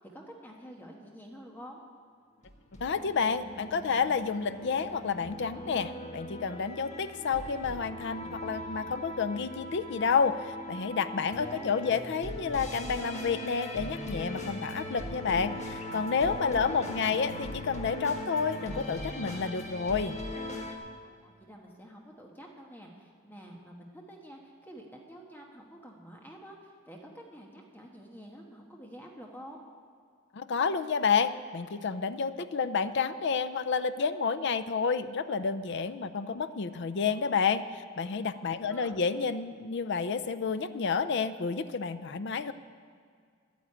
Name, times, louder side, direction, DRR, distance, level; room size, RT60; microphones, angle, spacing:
voice 1, 0.1-1.8 11.4-11.8 16.6-17.0 21.0-29.6 38.7-38.9, equal, 10° left, 0 dB, 1.3 m, -48 dB
sound 1, 2.4-20.8, left 1 dB, 35° left, 1.5 m, -40 dB
voice 2, 2.8-20.2 30.3-42.5, left 5 dB, 60° left, 12 dB, 0.5 m, -30 dB
11.5 x 9.3 x 8.6 m, 2.1 s
head